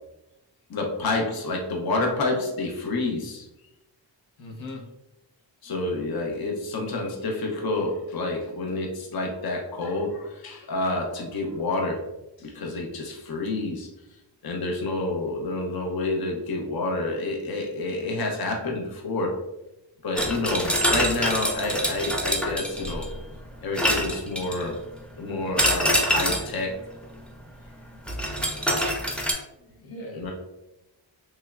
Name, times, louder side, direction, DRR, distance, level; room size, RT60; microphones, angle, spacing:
voice 1, 0.7-3.5 5.6-12.0 12.4-13.9 14.4-19.4 20.0-23.1 23.6-24.8 25.2-26.8 30.1-30.3, left 2 dB, 55° left, 1 dB, 0.6 m, -28 dB
voice 2, 4.4-4.8 29.6-30.2, left 1 dB, 90° left, 0 dB, 0.8 m, -39 dB
sound 1, 20.2-23.2 23.8-24.7 25.6-26.6 28.1-29.3, equal, 5° left, 0.5 m, -25 dB
3.3 x 3.1 x 2.3 m, 0.95 s
wide cardioid pair, 100°, 45 cm